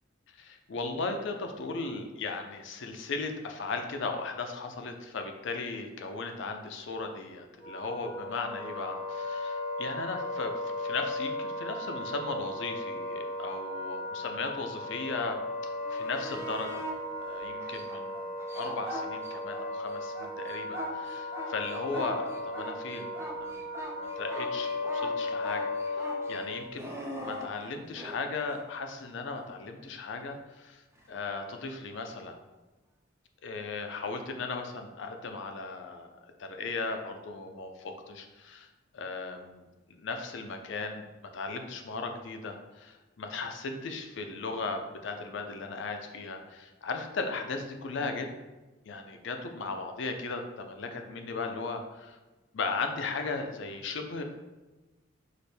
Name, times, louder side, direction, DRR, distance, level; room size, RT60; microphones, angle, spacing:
voice 1, 0.3-16.9 17.2-23.7 24.2-26.9 27.2-32.4 33.4-36.1 36.4-38.7 38.9-41.1 41.3-48.3 48.9-52.2 52.5-54.2, left 3 dB, 70° left, 5 dB, 0.5 m, -37 dB
Wind instrument woodwind instrument, 7.6-26.7, left 2 dB, 45° left, 1.1 m, -36 dB
sound 1, 15.7-17.0 17.6-19.7 20.0-28.2 31.0-31.1, equal, 15° right, 0.6 m, -40 dB
5.0 x 2.2 x 4.2 m, 1.1 s
head